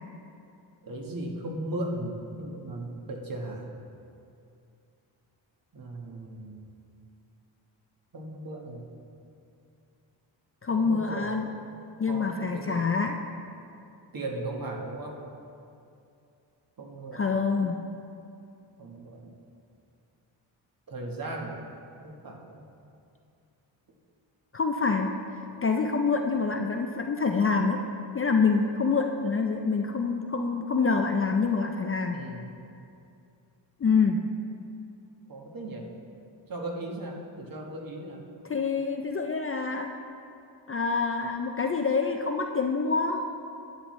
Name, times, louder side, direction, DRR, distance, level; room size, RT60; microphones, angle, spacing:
voice 1, 0.8-3.7 5.7-6.7 8.1-8.9 10.7-11.3 12.1-12.8 14.1-15.2 16.8-17.4 18.8-19.3 20.9-21.6 22.0-22.6 32.1-32.4 35.3-35.9 36.5-38.2, right 2 dB, 45° right, 0 dB, 1.3 m, -37 dB
voice 2, 10.6-11.5 12.0-13.2 17.1-17.8 24.5-25.1 25.6-27.8 28.1-32.2 33.8-34.2 38.5-39.9 40.7-43.2, left 4 dB, 30° left, 3 dB, 0.4 m, -26 dB
11.0 x 7.7 x 3.2 m, 2.6 s
cardioid pair, 90°, 47 cm